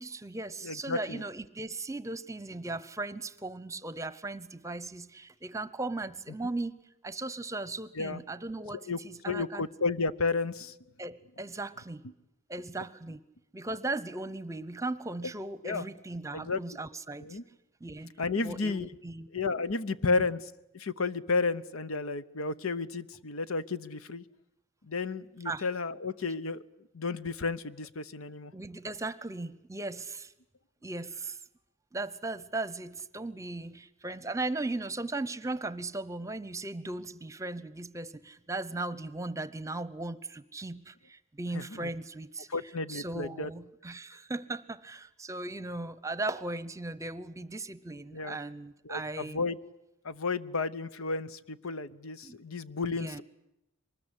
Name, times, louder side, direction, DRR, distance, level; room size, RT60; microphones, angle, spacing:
voice 1, 0.0-6.7 7.0-9.7 11.0-12.0 12.5-13.2 13.5-17.4 17.8-18.1 18.4-19.3 20.0-20.3 25.4-25.7 28.5-30.3 30.8-31.4 31.9-42.5 42.9-49.5 52.2-52.4 52.8-53.2, right 2 dB, 15° right, 16 dB, 0.8 m, -37 dB
voice 2, 0.6-1.2 8.0-8.2 8.9-9.0 9.2-10.7 15.6-15.9 16.3-16.6 17.2-17.4 18.2-18.9 19.3-20.4 20.7-24.2 24.8-26.6 26.9-28.5 41.5-41.9 42.5-43.5 48.1-48.4 48.8-49.6 50.0-53.2, left 4 dB, 75° left, 15 dB, 0.9 m, -32 dB
24.0 x 20.5 x 9.9 m, 0.89 s
head